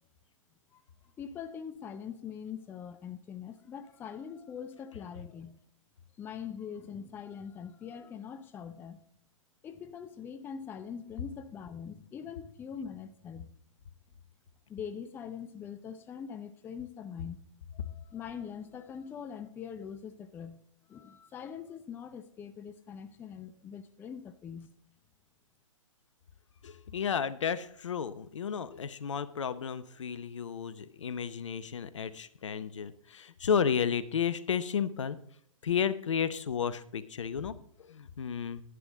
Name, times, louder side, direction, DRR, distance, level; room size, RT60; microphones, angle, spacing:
voice 1, 1.2-5.6 6.2-9.0 9.6-13.5 14.7-17.4 17.7-20.6 20.9-24.7, left 7 dB, 10° left, 11 dB, 0.5 m, -43 dB
voice 2, 26.6-35.2 35.6-38.6, left 7 dB, 65° left, 15 dB, 0.8 m, -32 dB
11.0 x 11.0 x 3.8 m, 0.65 s
figure-of-eight pair, 120°, 17 cm